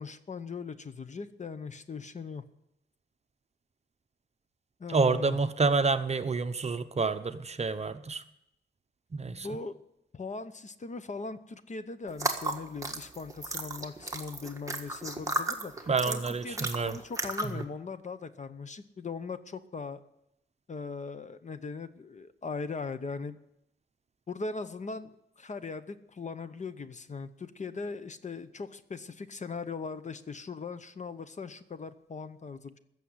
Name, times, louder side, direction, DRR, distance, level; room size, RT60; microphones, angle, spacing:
voice 1, 0.0-2.4 4.8-5.4 9.4-9.8 10.1-20.0 20.7-23.4 24.3-32.8, left 4 dB, 40° left, 12 dB, 0.8 m, -39 dB
voice 2, 4.9-8.2 9.1-9.5 15.9-17.0, right 4 dB, 35° right, 10 dB, 0.8 m, -28 dB
sound 1, 12.1-17.6, right 2 dB, 15° right, 1.5 m, -34 dB
15.0 x 7.1 x 9.6 m, 0.82 s
wide cardioid pair, 115°, 20 cm